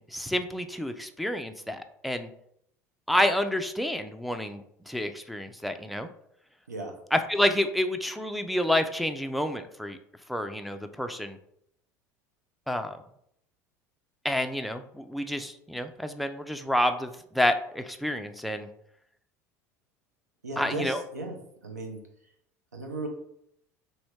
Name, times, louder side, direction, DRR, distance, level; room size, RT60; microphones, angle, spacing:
voice 1, 0.0-2.3 3.1-6.1 7.1-10.0 10.3-11.4 12.7-13.0 14.2-18.7 20.6-21.0, left 1 dB, ahead, 6 dB, 0.3 m, -29 dB
voice 2, 20.4-21.4 21.6-22.0 22.7-23.1, right 2 dB, 90° right, 2 dB, 0.6 m, -35 dB
3.0 x 2.7 x 3.1 m, 0.72 s
hypercardioid pair, 70°, 9 cm